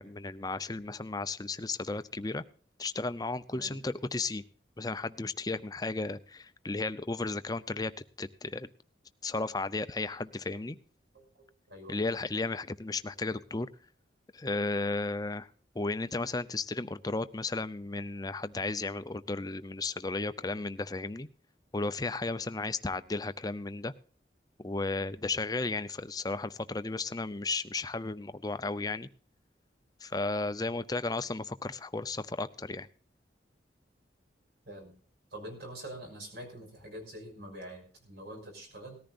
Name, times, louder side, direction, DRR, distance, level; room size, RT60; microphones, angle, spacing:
voice 1, 0.0-2.4 2.8-4.4 4.8-7.9 8.2-8.7 9.2-10.8 11.9-13.7 14.3-15.5 15.7-21.3 21.7-23.9 24.6-29.1 30.0-32.9, left 3 dB, 20° left, 12 dB, 0.6 m, -34 dB
voice 2, 3.5-3.8 11.1-12.0 34.7-34.9 35.3-39.0, right 1 dB, 65° right, 3 dB, 6.0 m, -45 dB
19.0 x 14.0 x 2.5 m, 0.41 s
head